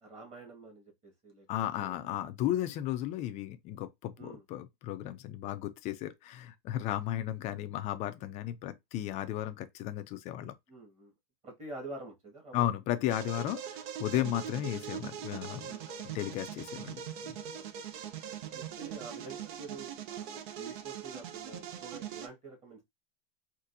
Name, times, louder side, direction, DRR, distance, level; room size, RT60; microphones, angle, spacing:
voice 1, 0.0-1.5 1.8-2.3 4.2-4.4 6.7-6.8 10.7-11.1 11.4-12.7 15.7-16.2 17.5-17.7 18.5-22.8, right 3 dB, 20° right, 1.6 m, -47 dB
voice 2, 1.5-10.5 12.5-15.7 16.1-17.3, left 12 dB, 25° left, 0.3 m, -34 dB
sound 1, 13.1-22.3, right 9 dB, 60° right, 0.7 m, -42 dB
4.0 x 2.6 x 2.6 m
supercardioid pair, 145°, 29 cm